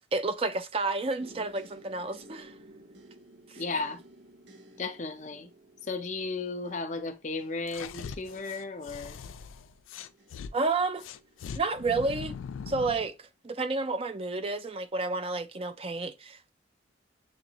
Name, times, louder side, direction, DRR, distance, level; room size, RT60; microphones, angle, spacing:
voice 1, 0.1-2.5 3.5-3.6 10.5-11.0 11.6-12.4 12.7-16.5, right 3 dB, 30° right, 0.4 m, -30 dB
sound 1, 1.2-13.1 13.7-14.2 14.6-14.8, right 1 dB, 65° right, 1.0 m, -55 dB
voice 2, 3.6-4.0 4.8-5.5 5.9-9.2, left 3 dB, 40° left, 0.5 m, -34 dB
sound 2, 7.7-10.5 11.0-13.1, left 6 dB, 85° left, 0.4 m, -41 dB
6.7 x 2.4 x 2.9 m
head